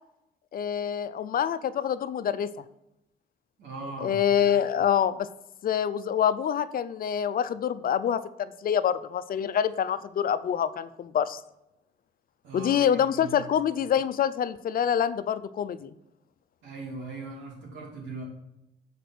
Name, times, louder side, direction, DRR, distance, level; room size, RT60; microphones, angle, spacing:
voice 1, 0.5-2.5 4.0-5.3 5.6-11.4 12.5-15.9, left 9 dB, 50° left, 14 dB, 0.5 m, -26 dB
voice 2, 3.6-4.2 12.4-13.4 16.6-18.2, right 3 dB, 85° right, -2 dB, 2.8 m, -39 dB
6.6 x 5.0 x 6.0 m, 0.87 s
cardioid pair, 80°, 19 cm